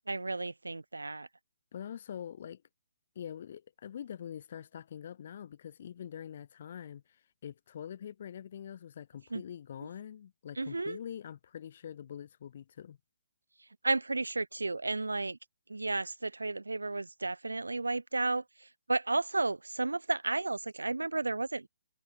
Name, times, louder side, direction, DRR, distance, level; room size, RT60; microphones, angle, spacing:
voice 1, 0.1-1.3 9.3-9.4 9.8-9.9 10.6-11.0 13.8-15.4 15.7-21.7, right 3 dB, 85° right, 0.4 m, -33 dB
voice 2, 1.7-2.6 3.2-13.0, left 9 dB, 50° left, 2.4 m, -44 dB
figure-of-eight pair, 135°, 0 cm